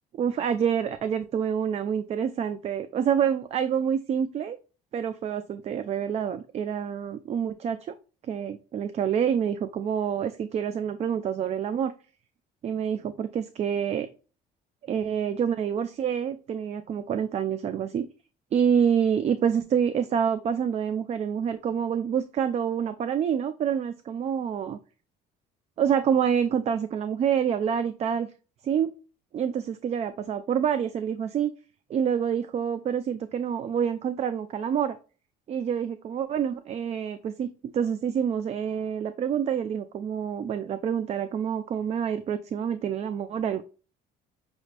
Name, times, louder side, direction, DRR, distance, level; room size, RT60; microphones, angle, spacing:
voice 1, 0.1-4.6 4.9-7.8 8.3-11.9 12.6-14.1 14.9-18.1 18.5-24.8 25.8-28.3 28.6-28.9 29.3-31.5 31.9-35.0 35.5-43.6, right 8 dB, 40° right, 11 dB, 0.4 m, -27 dB
6.1 x 3.3 x 2.4 m, 0.35 s
cardioid pair, 110°, 17 cm